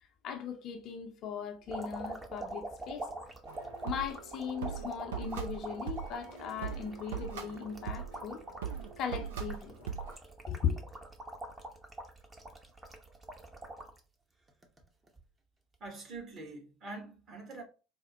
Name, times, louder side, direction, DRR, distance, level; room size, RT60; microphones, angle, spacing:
voice 1, 0.2-3.1 3.8-8.4 9.0-10.0 10.5-10.8, left 7 dB, 50° left, 0.5 m, -38 dB
sound 1, 1.7-14.0 14.5-15.2 16.2-16.4, right 2 dB, 20° right, 0.7 m, -44 dB
sound 2, 3.5-10.2, right 7 dB, 70° right, 0.5 m, -41 dB
voice 2, 15.8-17.6, right 3 dB, 40° right, 1.2 m, -44 dB
4.2 x 2.1 x 2.9 m
figure-of-eight pair, 65°, 0 cm